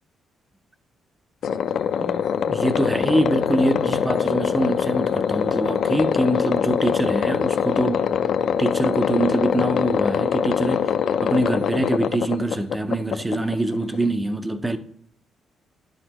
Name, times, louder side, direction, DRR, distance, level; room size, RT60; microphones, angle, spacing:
sound 1, 1.4-14.0, left 8 dB, 65° left, 0.4 m, -23 dB
voice 1, 2.5-8.1 8.6-10.9 11.2-14.8, right 1 dB, 10° right, 0.5 m, -24 dB
10.5 x 6.4 x 3.0 m
cardioid pair, 145°, 0 cm